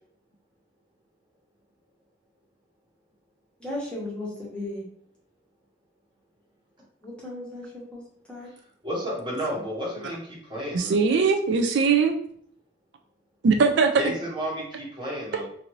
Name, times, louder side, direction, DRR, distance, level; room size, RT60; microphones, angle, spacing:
voice 1, 3.6-4.8 7.0-8.0 8.3-8.5, left 1 dB, 5° left, -5 dB, 0.9 m, -35 dB
voice 2, 8.8-11.1 14.0-15.5, equal, 25° right, -4 dB, 1.0 m, -32 dB
voice 3, 10.7-12.2 13.4-14.0, right 5 dB, 75° right, 5 dB, 0.3 m, -20 dB
2.6 x 2.5 x 3.0 m, 0.62 s
head